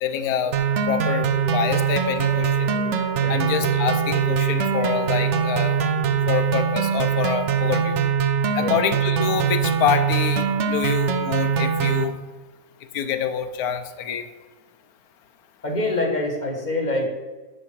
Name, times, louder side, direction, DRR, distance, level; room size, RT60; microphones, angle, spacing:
voice 1, 0.0-0.6 0.9-2.7 3.3-5.8 6.3-8.0 8.5-12.2 12.9-14.3, left 8 dB, 65° left, 9 dB, 0.9 m, -26 dB
sound 1, 0.5-12.0, right 7 dB, 85° right, 0.6 m, -22 dB
sound 2, 1.3-8.2, left 1 dB, 5° right, 3.1 m, -38 dB
voice 2, 15.6-17.1, left 2 dB, 25° left, 0 dB, 1.2 m, -25 dB
9.7 x 4.3 x 5.9 m, 1.3 s
omnidirectional pair, 2.1 m